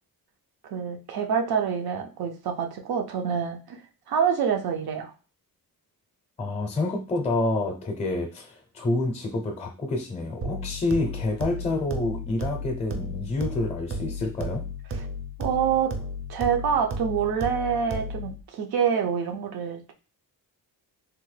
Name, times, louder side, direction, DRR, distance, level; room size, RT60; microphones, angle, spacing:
voice 1, 0.7-3.8 4.1-5.1 15.4-16.0 16.3-19.9, right 7 dB, 85° right, 4 dB, 0.6 m, -26 dB
voice 2, 6.4-14.6, left 2 dB, 20° left, 3 dB, 0.4 m, -28 dB
sound 1, 10.4-18.4, left 1 dB, 35° right, 0.5 m, -34 dB
3.4 x 2.1 x 3.2 m, 0.35 s
wide cardioid pair, 150°, 37 cm